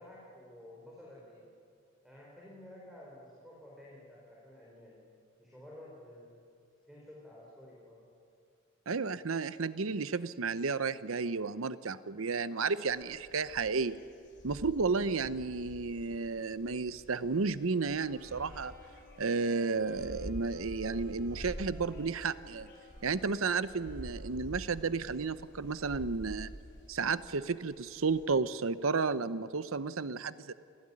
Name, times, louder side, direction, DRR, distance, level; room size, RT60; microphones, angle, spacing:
voice 1, 0.0-1.5 2.0-5.0 5.4-6.3 6.9-8.0 9.1-9.2, left 1 dB, ahead, -5 dB, 4.9 m, -52 dB
voice 2, 8.9-14.0 14.4-18.7 19.2-22.7 23.0-26.5 26.9-30.5, right 4 dB, 85° right, 15 dB, 0.8 m, -32 dB
sound 1, 12.9-28.3, equal, 60° left, 3.6 m, -48 dB
sound 2, 17.6-24.7, left 1 dB, 45° right, 5.4 m, -57 dB
26.5 x 16.5 x 9.9 m, 2.3 s
head